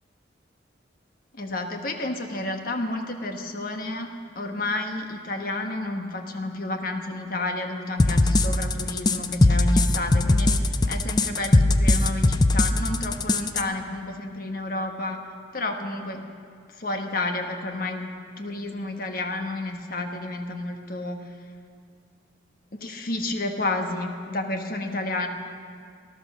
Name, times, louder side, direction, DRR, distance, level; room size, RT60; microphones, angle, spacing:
voice 1, 1.3-4.1 4.3-15.2 15.5-16.2 16.7-18.1 18.4-21.4 22.8-25.3, left 2 dB, 50° left, 4 dB, 1.3 m, -31 dB
sound 1, 8.0-13.6, left 2 dB, 20° left, 0.5 m, -19 dB
19.0 x 12.0 x 6.5 m, 2.2 s
head